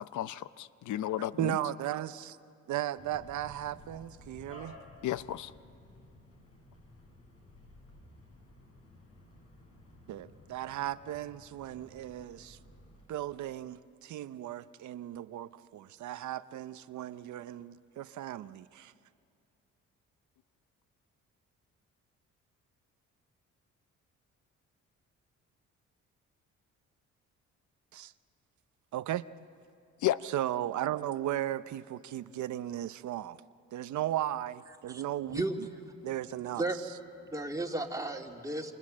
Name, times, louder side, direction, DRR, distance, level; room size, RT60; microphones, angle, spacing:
voice 1, 0.0-1.6 5.0-5.5 30.0-30.2, left 13 dB, 75° left, 0.7 m, -33 dB
voice 2, 1.4-2.4 2.7-4.7 10.1-12.6 13.1-18.9 27.9-28.1 28.9-29.3 30.2-33.4 33.7-35.4 36.0-36.7, right 13 dB, 70° right, 0.7 m, -36 dB
sound 1, 3.0-13.1, left 2 dB, 50° left, 7.5 m, -55 dB
voice 3, 34.9-35.5 36.5-36.8 37.2-38.7, right 2 dB, 10° right, 2.5 m, -34 dB
28.5 x 26.5 x 7.5 m
cardioid pair, 90°, 30 cm